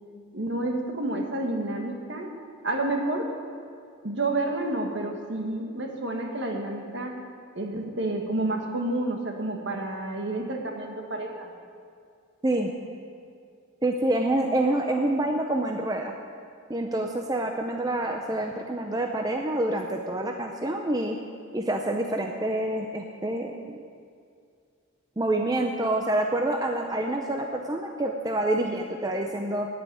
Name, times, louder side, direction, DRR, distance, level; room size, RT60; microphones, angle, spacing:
voice 1, 0.3-2.3 2.6-3.3 4.0-7.1 7.5-11.5, right 2 dB, 55° right, 2 dB, 1.5 m, -29 dB
voice 2, 13.8-16.1 16.7-21.2 21.5-23.8 25.2-29.7, right 1 dB, 20° right, 3 dB, 0.5 m, -27 dB
9.3 x 8.5 x 9.5 m, 2.3 s
head